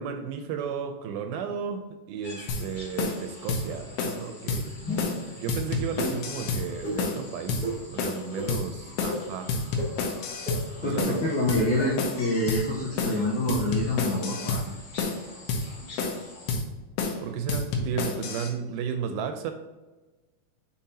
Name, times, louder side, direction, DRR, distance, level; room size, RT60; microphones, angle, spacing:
voice 1, 0.0-4.7 5.4-9.5 10.8-11.2 17.2-19.5, right 7 dB, 80° right, 7 dB, 2.3 m, -34 dB
sound 1, 2.2-16.5, left 2 dB, 40° left, 2.7 m, -47 dB
sound 2, 2.5-2.7 3.0-3.2 3.5-3.7 4.0-4.2 4.5-4.6 5.0-5.2 5.5-6.7 7.0-7.2 7.5-7.7 8.0-8.2 8.5-8.7 9.0-9.2 9.5-10.7 11.0-11.2 11.5-11.7 12.0-12.2 12.5-12.7 13.0-13.2 13.5-14.7 15.0-15.2 15.5-15.7 16.0-16.2 16.5-16.7 17.0-17.2 17.5-18.5, left 4 dB, 90° left, 3.0 m, -29 dB
sound 3, 4.8-5.2 5.9-6.1 6.8-7.0 7.6-7.7 8.3-8.5 9.1-9.2 9.8-9.9 10.4-10.5 11.1-11.2 11.8-11.9, equal, 20° right, 1.2 m, -32 dB
voice 2, 10.8-14.6, left 1 dB, 70° left, -4 dB, 1.9 m, -26 dB
8.6 x 5.5 x 2.8 m, 1.2 s
omnidirectional pair, 4.5 m